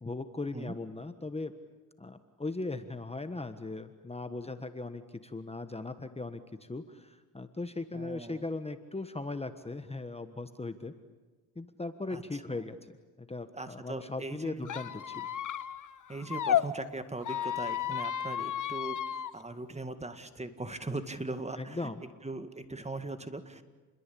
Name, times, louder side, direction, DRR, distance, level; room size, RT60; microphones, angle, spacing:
voice 1, 0.0-1.5 2.0-10.9 11.5-15.3 21.6-22.0, left 2 dB, 15° left, 9 dB, 1.4 m, -38 dB
voice 2, 7.9-8.5 12.1-12.4 13.5-14.7 16.1-23.6, right 2 dB, 15° right, 9 dB, 2.0 m, -40 dB
Squeak, 14.6-16.6 17.2-19.3, left 10 dB, 50° left, 1.2 m, -33 dB
29.0 x 22.0 x 8.5 m, 1.3 s
cardioid pair, 90°, 39 cm